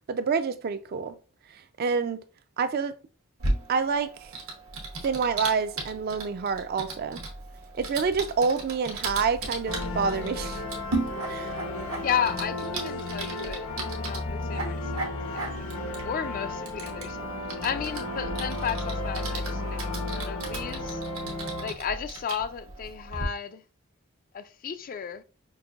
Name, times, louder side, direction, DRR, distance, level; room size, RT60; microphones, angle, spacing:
voice 1, 0.1-1.1 1.8-2.2 2.6-2.9 3.7-4.3 5.0-7.2 7.8-10.6 11.3-11.5, right 5 dB, 45° right, 0.3 m, -27 dB
Typing, 3.4-23.2, right 2 dB, 80° right, 1.0 m, -37 dB
sound 1, 9.7-21.7, left 2 dB, 85° left, 0.9 m, -33 dB
voice 2, 12.0-13.7 14.0-15.5 16.0-21.0 21.6-23.6 24.3-25.2, left 7 dB, 40° left, 0.3 m, -33 dB
5.3 x 2.5 x 2.4 m
head